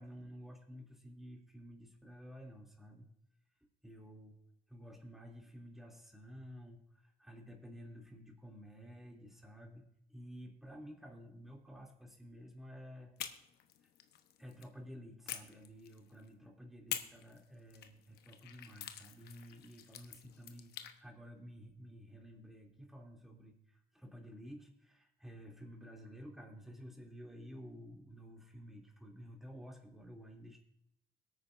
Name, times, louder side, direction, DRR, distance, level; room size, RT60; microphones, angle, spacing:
voice 1, 0.0-3.1 3.8-4.4 4.7-13.1 14.4-20.7 21.0-30.6, equal, ahead, -1 dB, 2.8 m, -52 dB
sound 1, 13.2-14.7 15.3-16.3 16.9-21.0, left 10 dB, 70° left, 1.0 m, -47 dB
22.0 x 9.0 x 2.6 m, 0.79 s
cardioid pair, 110°, 17 cm